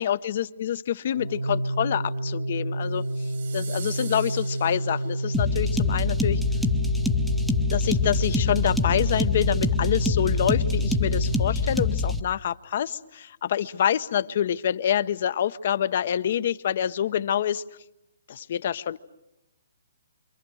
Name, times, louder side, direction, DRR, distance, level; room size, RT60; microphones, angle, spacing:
voice 1, 0.0-3.1 3.5-6.4 7.2-7.3 7.7-17.6 18.3-19.0, left 9 dB, 45° left, 14 dB, 0.9 m, -27 dB
Organ, 1.1-12.0, right 1 dB, 70° right, 1.2 m, -30 dB
sound 1, 3.0-5.4, right 7 dB, 55° right, 1.8 m, -43 dB
sound 2, 5.3-12.2, left 4 dB, ahead, 0.9 m, -25 dB
28.0 x 26.5 x 6.4 m, 0.90 s
hypercardioid pair, 165°, 0 cm